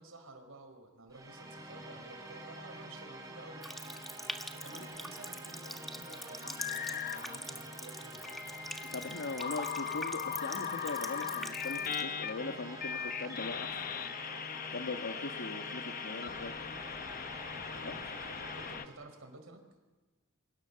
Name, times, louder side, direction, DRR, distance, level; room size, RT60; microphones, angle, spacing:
voice 1, 0.0-3.6 4.5-9.3 17.5-19.7, right 2 dB, 80° right, 6 dB, 4.6 m, -53 dB
sound 1, 1.1-19.0, right 1 dB, 15° right, 5.3 m, -47 dB
Water tap faucet, 3.6-12.0, equal, ahead, 1.4 m, -45 dB
sound 2, 6.4-7.4 8.3-18.9, left 8 dB, 45° left, 0.8 m, -39 dB
voice 2, 8.8-13.8 14.7-16.5 17.8-18.0, left 3 dB, 60° left, 4 dB, 1.4 m, -40 dB
28.0 x 24.0 x 6.9 m, 1.2 s
head